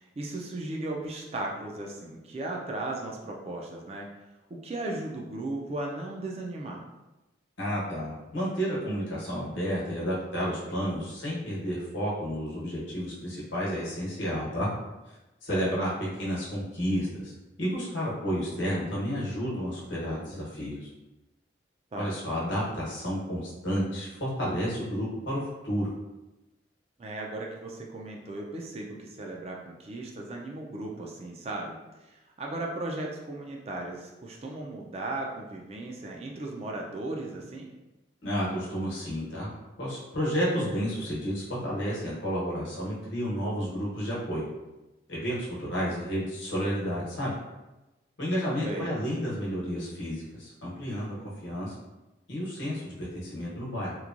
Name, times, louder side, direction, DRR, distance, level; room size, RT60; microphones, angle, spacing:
voice 1, 0.0-4.1 4.5-6.8 15.5-15.7 21.9-22.1 27.0-31.8 32.0-37.7 48.6-48.9, right 2 dB, 30° right, 0 dB, 0.3 m, -36 dB
voice 2, 7.6-14.7 15.1-15.2 15.4-20.9 22.0-25.9 38.2-39.5 39.8-44.4 45.1-47.3 48.2-51.1 51.4-51.7 52.3-54.0, equal, 80° left, -6 dB, 1.0 m, -31 dB
3.0 x 2.1 x 2.4 m, 1.0 s
head